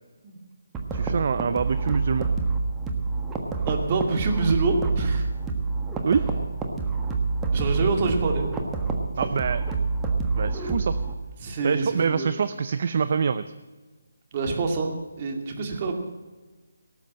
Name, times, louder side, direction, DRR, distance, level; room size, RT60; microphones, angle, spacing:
sound 1, 0.7-11.1, right 4 dB, 10° right, 1.4 m, -27 dB
voice 1, 0.9-2.3 6.0-6.2 9.2-9.6 10.4-10.9 11.6-13.4, right 6 dB, 50° right, 13 dB, 0.5 m, -25 dB
voice 2, 3.6-5.3 7.5-8.5 11.4-12.3 14.3-15.9, right 3 dB, 30° right, 3 dB, 2.4 m, -26 dB
18.0 x 7.3 x 7.5 m, 1.3 s
figure-of-eight pair, 160°, 0 cm